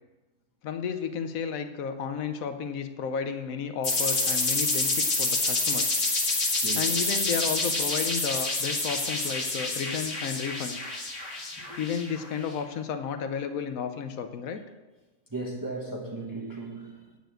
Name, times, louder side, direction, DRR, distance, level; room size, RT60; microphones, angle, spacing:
voice 1, 0.6-6.0 6.8-10.8 11.8-14.6, left 6 dB, 85° left, 8 dB, 1.2 m, -32 dB
sound 1, 3.8-12.4, left 2 dB, 60° left, 2.3 m, -28 dB
voice 2, 6.6-6.9 11.6-11.8 15.3-17.2, right 2 dB, 15° right, -2 dB, 1.2 m, -36 dB
9.2 x 6.8 x 7.6 m, 1.1 s
omnidirectional pair, 1.4 m